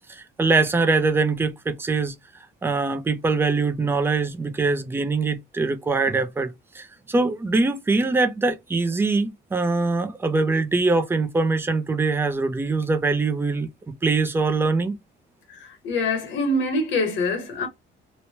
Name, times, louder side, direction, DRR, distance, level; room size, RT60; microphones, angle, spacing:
voice 1, 0.1-2.1 2.6-13.7 14.0-14.9, right 3 dB, 10° right, 0.3 m, -23 dB
voice 2, 15.5-17.7, left 2 dB, 70° left, 0.9 m, -25 dB
3.1 x 2.1 x 2.7 m
cardioid pair, 160°, 20 cm